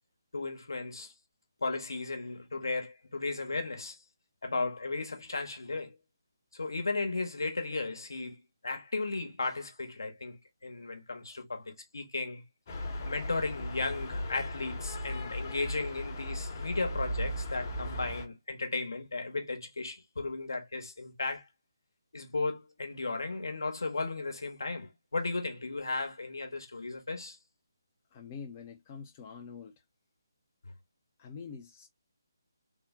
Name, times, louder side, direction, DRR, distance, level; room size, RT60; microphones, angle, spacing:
voice 1, 0.3-1.1 1.6-4.0 4.4-6.0 6.5-12.4 13.0-21.5 22.1-27.4 30.6-30.7, left 3 dB, 70° left, 1.1 m, -35 dB
sound 1, 12.7-18.3, left 1 dB, 40° left, 1.1 m, -37 dB
voice 2, 28.1-29.8 31.2-31.9, left 6 dB, 25° left, 0.5 m, -45 dB
3.7 x 2.1 x 3.6 m
figure-of-eight pair, 150°, 2 cm